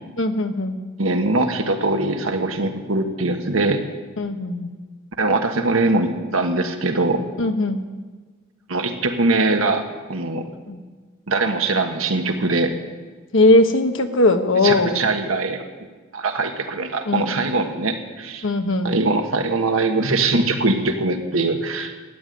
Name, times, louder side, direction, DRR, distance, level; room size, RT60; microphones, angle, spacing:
voice 1, 0.2-0.8 4.2-4.7 7.4-7.9 10.7-10.8 13.3-15.0 17.0-17.2 18.4-18.9, left 2 dB, 65° left, 7 dB, 1.2 m, -19 dB
voice 2, 1.0-3.8 5.2-7.2 8.7-9.8 10.1-10.5 11.3-12.7 14.6-15.6 16.1-18.4 18.8-21.9, right 3 dB, 90° right, 5 dB, 1.5 m, -22 dB
13.5 x 9.4 x 9.3 m, 1.4 s
head